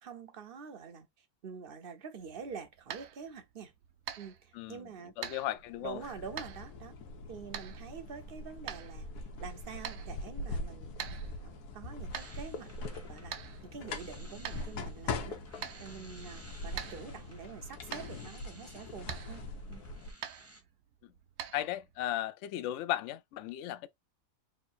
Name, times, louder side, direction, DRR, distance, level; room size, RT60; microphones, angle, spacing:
voice 1, 0.0-3.7 4.2-5.3 5.8-7.0 7.3-11.0 11.4-12.7 13.1-19.8, right 6 dB, 55° right, 0.7 m, -46 dB
sound 1, 2.2-22.1, right 9 dB, 90° right, 1.1 m, -47 dB
voice 2, 4.5-4.9 5.2-6.0 21.0-21.1 21.5-23.9, left 13 dB, 70° left, 0.7 m, -36 dB
sound 2, 5.6-20.1, left 2 dB, 85° left, 1.4 m, -42 dB
sound 3, 12.1-20.6, right 1 dB, 15° right, 0.7 m, -57 dB
3.5 x 2.7 x 4.3 m
omnidirectional pair, 1.6 m